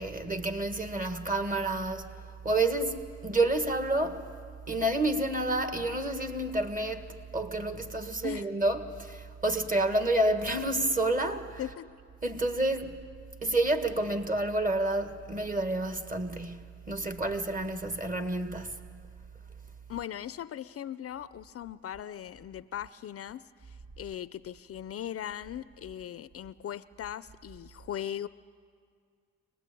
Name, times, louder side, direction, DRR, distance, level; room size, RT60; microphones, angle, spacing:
voice 1, 0.0-2.1 2.4-4.2 4.7-7.1 7.3-11.7 12.2-13.0 13.4-18.8, right 2 dB, 25° right, 1.7 m, -29 dB
voice 2, 11.6-11.9 19.9-28.3, left 10 dB, 50° left, 0.5 m, -39 dB
24.5 x 19.5 x 8.4 m
cardioid pair, 90°, 30 cm